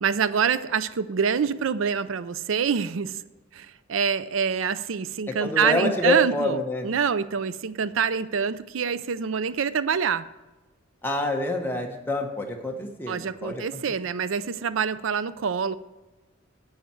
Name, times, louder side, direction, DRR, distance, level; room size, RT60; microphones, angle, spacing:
voice 1, 0.0-3.2 3.5-6.6 6.8-10.3 13.1-15.8, right 6 dB, 85° right, 15 dB, 0.5 m, -26 dB
voice 2, 5.3-6.9 11.0-14.0, left 1 dB, 10° left, 1 dB, 1.4 m, -27 dB
10.5 x 8.7 x 4.5 m, 1.1 s
head